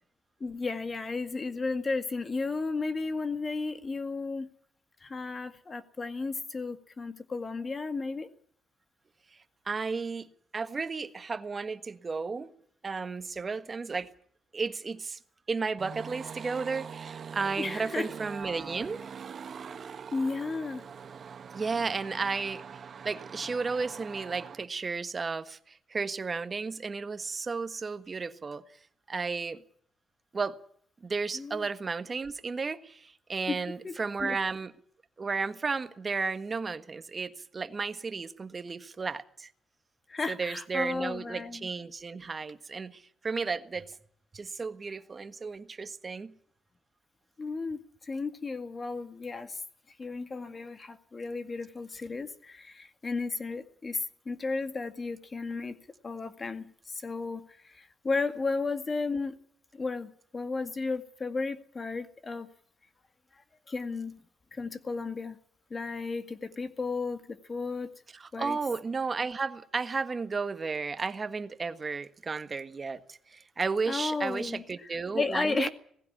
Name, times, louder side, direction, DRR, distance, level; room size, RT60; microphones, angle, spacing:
voice 1, 0.4-4.5 5.0-8.3 17.6-18.1 20.1-20.8 31.3-31.7 33.5-34.4 40.1-41.7 47.4-49.6 50.0-55.8 56.0-59.4 59.7-62.5 63.7-64.2 64.5-65.4 65.7-67.9 68.3-68.6 73.9-75.7, left 3 dB, 30° left, 2.0 m, -34 dB
voice 2, 9.7-10.3 10.5-12.5 12.8-14.1 14.5-15.2 15.5-19.0 21.5-22.6 23.0-28.6 29.1-29.6 30.3-30.6 31.0-34.7 35.2-39.5 40.3-43.9 44.3-46.3 68.1-75.7, right 4 dB, 35° right, 1.5 m, -33 dB
sound 1, 15.8-24.6, right 6 dB, 50° right, 1.4 m, -43 dB
19.0 x 15.5 x 10.0 m
cardioid pair, 90°, 0 cm